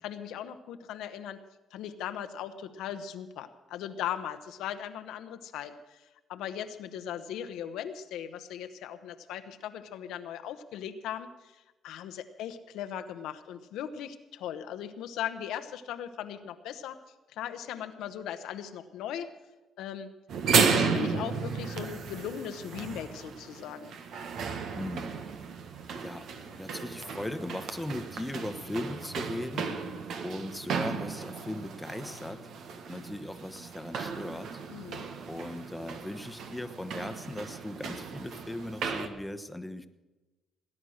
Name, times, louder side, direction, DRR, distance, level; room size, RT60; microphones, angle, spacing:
voice 1, 0.0-1.4 1.7-6.0 6.3-11.5 11.8-17.0 17.3-19.3 19.8-20.1 20.5-24.0 34.7-35.1, left 9 dB, 90° left, 8 dB, 0.9 m, -38 dB
sound 1, 20.3-39.1, right 5 dB, 75° right, 1.5 m, -34 dB
voice 2, 24.7-25.2 26.0-29.7 30.2-32.5 32.9-34.6 35.3-39.9, left 1 dB, 5° left, 9 dB, 1.0 m, -38 dB
18.0 x 9.9 x 6.4 m, 1.1 s
cardioid pair, 90°, 0 cm